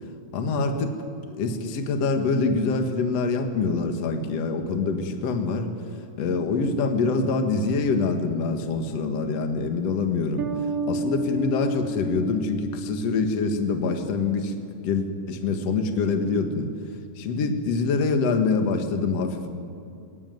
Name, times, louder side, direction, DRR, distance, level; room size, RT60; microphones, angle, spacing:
voice 1, 0.3-1.0 1.3-5.7 6.2-10.5 10.9-14.5 14.8-16.7 17.2-19.5, left 4 dB, 55° left, 5 dB, 2.5 m, -25 dB
Bass guitar, 10.4-13.9, right 1 dB, 85° right, 3.4 m, -31 dB
20.5 x 19.0 x 9.4 m, 2.5 s
omnidirectional pair, 3.9 m